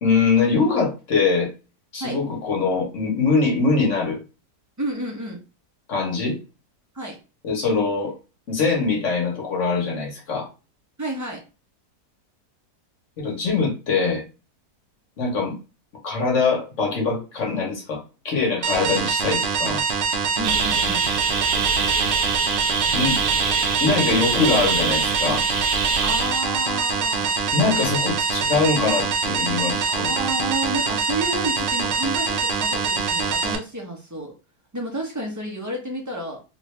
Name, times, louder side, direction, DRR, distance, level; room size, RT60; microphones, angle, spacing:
voice 1, 0.0-1.5 1.9-4.2 5.9-6.4 7.4-8.1 8.5-10.5 13.2-14.2 15.2-15.5 16.0-19.8 22.9-23.2 23.8-25.4 27.5-30.1, left 4 dB, 50° left, 0 dB, 1.4 m, -22 dB
voice 2, 4.8-5.4 6.9-7.2 11.0-11.4 20.4-21.1 26.0-27.5 29.9-34.3 34.7-36.4, right 1 dB, 15° right, 0 dB, 0.6 m, -30 dB
sound 1, 18.6-33.6, right 5 dB, 65° right, 0.6 m, -24 dB
sound 2, 20.4-26.4, right 5 dB, 85° right, 1.2 m, -25 dB
3.2 x 2.6 x 3.2 m, 0.31 s
omnidirectional pair, 1.7 m